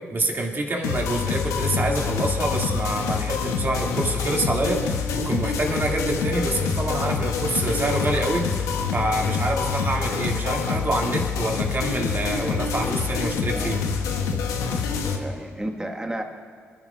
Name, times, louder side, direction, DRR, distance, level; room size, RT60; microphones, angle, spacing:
voice 1, 0.1-8.6 8.9-13.8, right 2 dB, 40° right, 0 dB, 2.4 m, -26 dB
sound 1, 0.8-15.2, left 6 dB, 85° left, 0.9 m, -26 dB
voice 2, 14.5-16.2, right 1 dB, 15° right, 2 dB, 1.6 m, -33 dB
24.0 x 11.0 x 2.5 m, 2.1 s
supercardioid pair, 55°, 5 cm